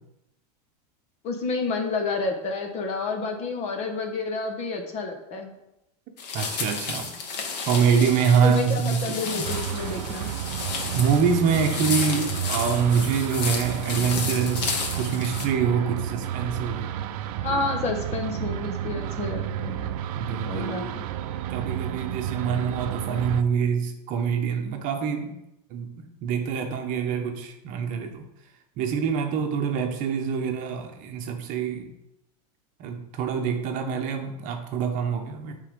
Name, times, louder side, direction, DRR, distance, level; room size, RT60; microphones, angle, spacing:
voice 1, 1.2-5.5 8.4-10.3 17.4-19.9 20.5-21.0, left 3 dB, 30° left, 4 dB, 1.3 m, -30 dB
sound 1, 6.2-15.4, left 5 dB, 80° left, 1.7 m, -32 dB
voice 2, 6.3-7.1 7.7-9.5 10.9-16.9 17.5-17.6 19.8-19.9 20.1-20.9 21.5-25.4 25.7-28.2 28.8-31.9 32.8-35.6, right 6 dB, 40° right, 4 dB, 1.0 m, -25 dB
sound 2, 9.4-23.4, right 10 dB, 60° right, 0.6 m, -31 dB
9.7 x 3.8 x 5.2 m, 0.90 s
supercardioid pair, 150°, 21 cm